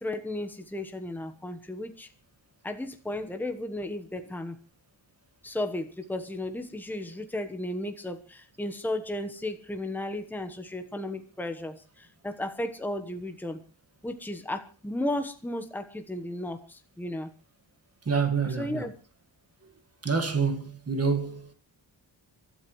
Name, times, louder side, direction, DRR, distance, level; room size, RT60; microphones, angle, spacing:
voice 1, 0.0-2.1 2.6-4.6 5.4-13.6 14.0-17.3 18.4-18.9, left 1 dB, 5° left, 1.1 m, -34 dB
voice 2, 18.1-18.9 20.0-21.5, right 5 dB, 30° right, 1.8 m, -27 dB
30.0 x 12.5 x 3.2 m
wide cardioid pair, 180°, 46 cm